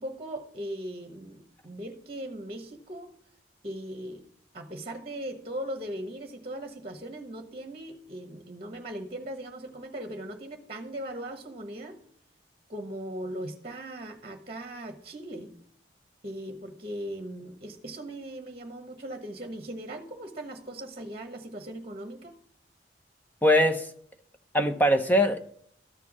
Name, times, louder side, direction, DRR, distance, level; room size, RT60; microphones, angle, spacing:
voice 1, 0.0-3.1 3.6-4.2 4.5-12.0 12.7-15.5 16.2-22.4, right 1 dB, 30° right, 6 dB, 1.1 m, -39 dB
voice 2, 23.4-23.9 24.5-25.4, equal, 10° left, 7 dB, 0.7 m, -21 dB
13.0 x 4.6 x 6.0 m, 0.63 s
head